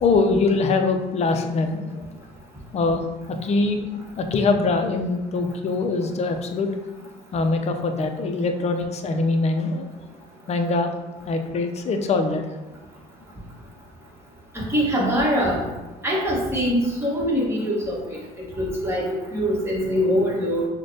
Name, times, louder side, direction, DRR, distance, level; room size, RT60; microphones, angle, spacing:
voice 1, 0.0-2.1 2.7-6.7 7.0-9.9 10.5-10.9 11.3-12.5, left 3 dB, 40° left, 6 dB, 0.5 m, -23 dB
voice 2, 14.5-15.6 16.0-18.2 18.5-20.7, equal, 15° right, -5 dB, 1.3 m, -23 dB
6.2 x 2.2 x 2.8 m, 1.1 s
cardioid pair, 110°, 17 cm